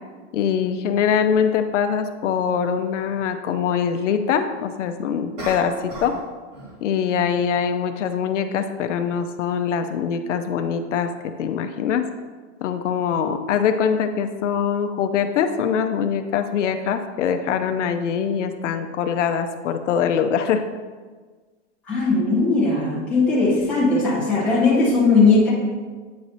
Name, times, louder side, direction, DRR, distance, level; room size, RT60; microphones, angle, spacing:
voice 1, 0.3-6.2 6.8-12.1 12.6-20.7, left 7 dB, 75° left, 8 dB, 0.6 m, -23 dB
sound 1, 1.3-1.4 5.4-6.3 6.5-6.8, right 1 dB, 30° right, 1.9 m, -35 dB
voice 2, 21.9-25.5, left 3 dB, 5° left, -8 dB, 0.7 m, -18 dB
8.7 x 3.2 x 4.0 m, 1.4 s
supercardioid pair, 175°, 36 cm